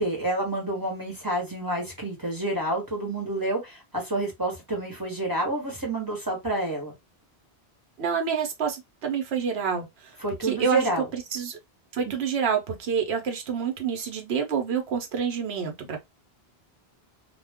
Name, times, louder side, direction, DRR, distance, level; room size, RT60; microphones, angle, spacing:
voice 1, 0.0-6.9 10.2-11.1, right 2 dB, 20° right, 1.1 m, -28 dB
voice 2, 8.0-10.1 10.4-10.8 11.1-11.6 11.9-16.1, right 6 dB, 80° right, 1.0 m, -28 dB
2.3 x 2.3 x 3.5 m
omnidirectional pair, 1.0 m